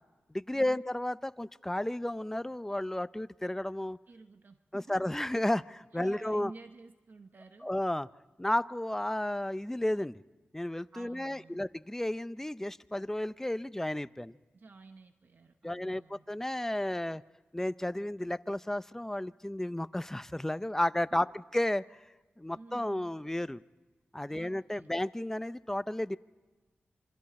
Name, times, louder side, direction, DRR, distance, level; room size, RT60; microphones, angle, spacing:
voice 1, 0.3-4.0 4.7-6.5 7.6-8.1 8.4-10.2 10.5-14.4 15.6-17.2 17.5-21.3 21.5-22.0 22.4-23.6 24.1-26.2, left 1 dB, 10° left, 14 dB, 0.6 m, -33 dB
voice 2, 4.1-5.1 5.9-7.7 10.9-11.6 14.5-16.3 21.1-21.4 22.5-23.1 24.3-24.9, right 3 dB, 60° right, 6 dB, 1.1 m, -52 dB
27.5 x 24.5 x 4.3 m, 1.3 s
wide cardioid pair, 70°, 4 cm